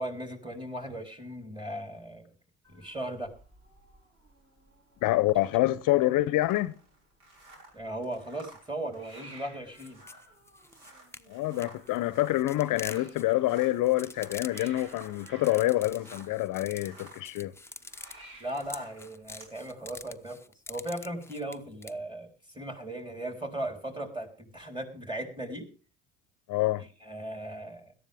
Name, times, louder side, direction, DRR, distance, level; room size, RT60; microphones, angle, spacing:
voice 1, 0.0-2.3 2.7-3.3 7.7-10.0 18.4-20.4 20.7-25.7 26.8-27.9, right 1 dB, 10° right, 3.9 m, -37 dB
Hiss, 2.6-20.0, right 1 dB, 35° right, 7.4 m, -56 dB
voice 2, 5.0-6.7 11.3-17.5 26.5-26.8, left 16 dB, 55° left, 0.7 m, -26 dB
sound 1, 6.4-16.4 16.7-19.6, right 2 dB, 70° right, 5.5 m, -55 dB
sound 2, 9.7-21.9, left 3 dB, 5° left, 0.7 m, -46 dB
17.5 x 13.0 x 3.5 m
hypercardioid pair, 70°, 37 cm